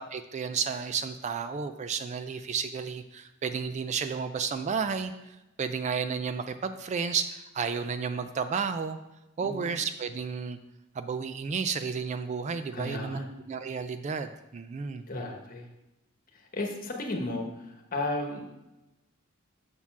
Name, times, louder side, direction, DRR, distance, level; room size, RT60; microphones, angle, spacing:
voice 1, 0.0-9.0 9.4-10.6 11.0-15.0, right 6 dB, 35° right, 10 dB, 0.3 m, -32 dB
voice 2, 9.4-9.8 12.7-13.3 15.1-15.7 16.3-18.5, left 2 dB, 40° left, 2 dB, 1.1 m, -34 dB
7.0 x 4.4 x 5.9 m, 0.97 s
head